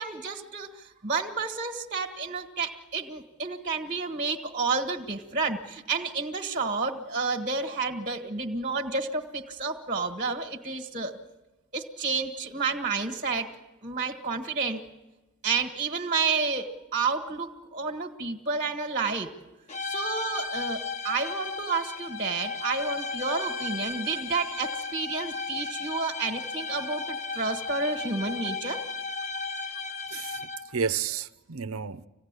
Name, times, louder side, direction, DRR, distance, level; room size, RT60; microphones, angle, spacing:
voice 1, 0.0-11.2 11.7-13.5 13.8-14.8 15.4-19.3 19.8-28.8, right 4 dB, 35° right, 1.5 m, -30 dB
sound 1, 19.7-30.8, left 4 dB, 30° left, 1.2 m, -35 dB
voice 2, 30.1-32.1, right 6 dB, 70° right, 0.8 m, -32 dB
26.0 x 17.0 x 9.8 m
head